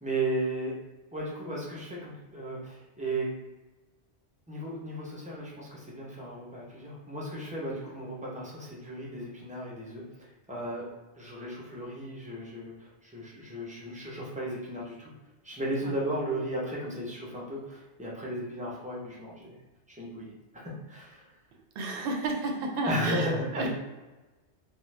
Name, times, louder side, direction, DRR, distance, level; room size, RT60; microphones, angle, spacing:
voice 1, 0.0-0.7 1.1-3.3 4.5-10.9 11.1-15.1 15.4-19.6 19.9-21.3 22.8-23.7, right 1 dB, 10° right, -5 dB, 0.5 m, -35 dB
voice 2, 21.8-23.7, right 3 dB, 65° right, 2 dB, 0.7 m, -32 dB
2.5 x 2.4 x 3.2 m, 1.2 s
omnidirectional pair, 1.1 m